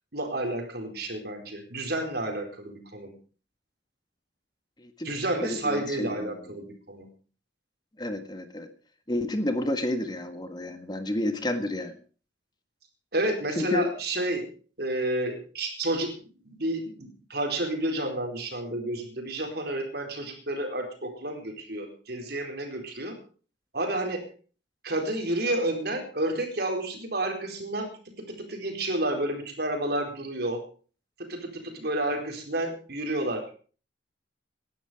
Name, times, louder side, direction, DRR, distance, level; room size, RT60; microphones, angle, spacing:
voice 1, 0.1-3.1 5.0-7.1 13.1-14.5 14.8-16.1 16.5-23.2 23.7-24.2 24.8-30.6 31.2-33.5, right 1 dB, 60° right, 4 dB, 4.4 m, -30 dB
voice 2, 4.8-5.1 5.4-6.4 8.0-8.7 9.1-11.9 13.6-13.8, left 1 dB, 25° left, 8 dB, 1.6 m, -30 dB
18.5 x 11.5 x 5.1 m, 0.40 s
head